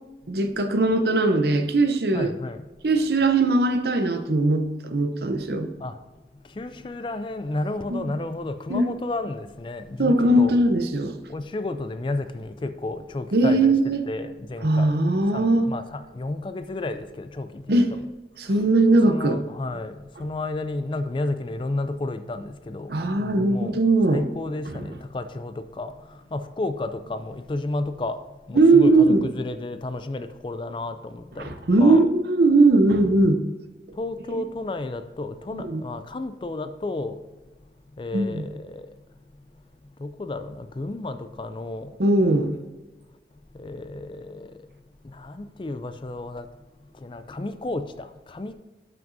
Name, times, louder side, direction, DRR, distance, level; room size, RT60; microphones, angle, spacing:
voice 1, 0.3-2.3 2.8-5.7 7.9-8.1 8.7-8.9 10.0-11.2 13.3-14.0 14.6-15.7 17.7-17.9 18.4-19.4 22.9-24.2 24.7-24.8 28.5-29.2 31.4-33.4 35.5-35.8 38.1-38.5 42.0-42.5, right 2 dB, 65° right, 0.7 m, -20 dB
voice 2, 2.1-2.7 5.8-6.0 6.5-10.5 11.3-14.9 15.3-18.0 18.5-18.6 19.1-23.8 24.1-28.2 28.5-32.1 34.0-37.2 38.0-38.9 40.0-42.0 43.6-44.5 45.0-46.5 46.9-48.5, left 2 dB, 30° left, 0.3 m, -32 dB
12.0 x 6.0 x 2.7 m
head